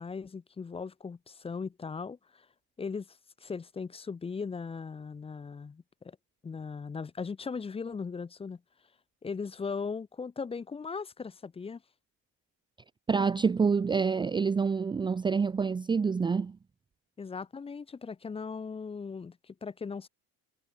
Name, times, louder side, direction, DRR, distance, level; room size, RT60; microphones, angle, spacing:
voice 1, 0.0-2.5 2.8-6.2 6.4-8.6 9.2-11.8 17.2-20.1, left 5 dB, 15° left, 1.0 m, -38 dB
voice 2, 13.1-16.6, right 5 dB, 15° right, 0.5 m, -27 dB
cardioid pair, 140°, 32 cm